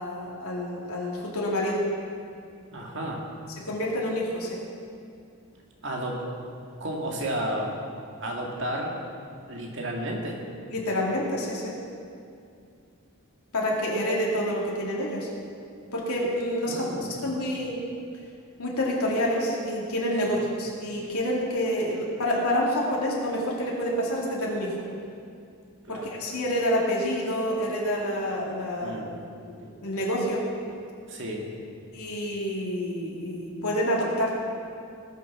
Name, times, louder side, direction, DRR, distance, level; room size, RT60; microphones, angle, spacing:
voice 1, 0.0-1.8 3.6-4.6 10.7-11.7 13.5-15.3 15.9-16.8 17.2-17.8 18.6-24.7 25.9-29.0 29.5-30.4 31.9-34.4, equal, 85° left, -4 dB, 2.5 m, -28 dB
voice 2, 2.7-3.2 5.8-6.2 6.8-7.7 8.2-8.9 9.5-10.4 16.7-17.3 20.2-20.4 25.9-26.1 28.8-29.1 31.1-31.4, right 1 dB, 55° right, -1 dB, 2.2 m, -32 dB
19.0 x 6.9 x 6.2 m, 2.4 s
head